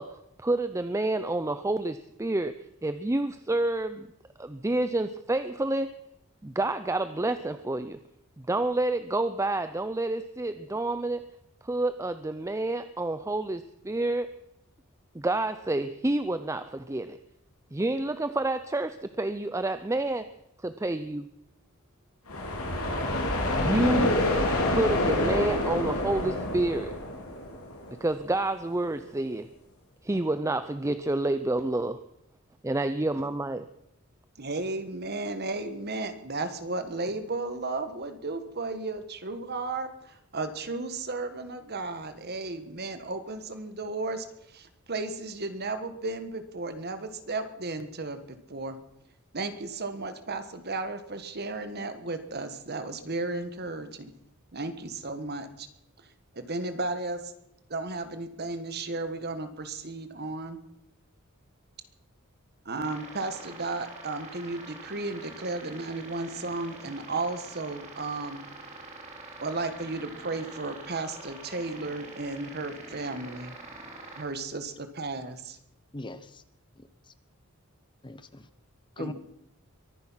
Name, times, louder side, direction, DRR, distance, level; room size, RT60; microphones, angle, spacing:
voice 1, 0.0-4.1 4.4-5.9 6.4-8.0 8.4-11.2 11.6-14.3 15.1-17.2 17.7-20.3 20.6-21.3 23.6-24.2 24.7-26.9 28.0-29.5 30.0-32.0 32.6-33.7, right 2 dB, 15° right, 11 dB, 0.5 m, -29 dB
sound 1, 22.3-28.0, left 1 dB, 80° left, 3.5 m, -27 dB
voice 2, 34.4-48.8 49.3-54.1 54.5-55.7 56.0-56.1 56.3-57.3 57.7-60.6 62.6-68.4 69.4-73.5 74.2-75.6 79.0-79.1, right 3 dB, 45° right, 9 dB, 1.5 m, -34 dB
sound 2, 62.8-74.2, right 3 dB, 30° right, 3.4 m, -45 dB
voice 3, 75.9-76.4 76.8-76.9 78.0-78.5 79.0-79.1, left 2 dB, 20° left, 13 dB, 0.7 m, -39 dB
23.0 x 10.5 x 5.7 m, 0.81 s
head